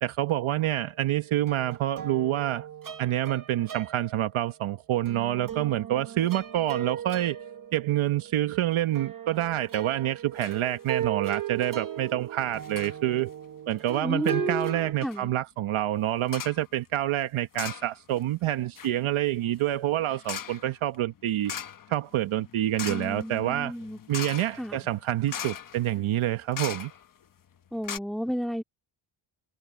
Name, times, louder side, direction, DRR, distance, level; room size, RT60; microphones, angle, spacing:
voice 1, 0.0-2.7 3.0-7.4 7.7-13.3 13.7-21.5 21.9-23.7 24.1-26.9, right 13 dB, 75° right, 1.2 m, -27 dB
sound 1, 0.8-1.1 1.4-4.6 5.1-14.9, right 9 dB, 40° right, 1.4 m, -37 dB
sound 2, 9.7-10.1 10.4-10.6 10.9-11.0 11.3-11.7 12.6-13.0 13.7-14.1 14.6-14.7 15.0-15.2 16.3-16.7 17.5-18.2 18.5-27.2 27.6-27.7 27.8-28.0, left 8 dB, 40° left, 1.0 m, -40 dB
voice 2, 14.0-14.7 15.0-15.3 22.9-24.0 24.6-24.8 27.7-28.6, equal, ahead, 2.2 m, -32 dB
cardioid pair, 110°, 50 cm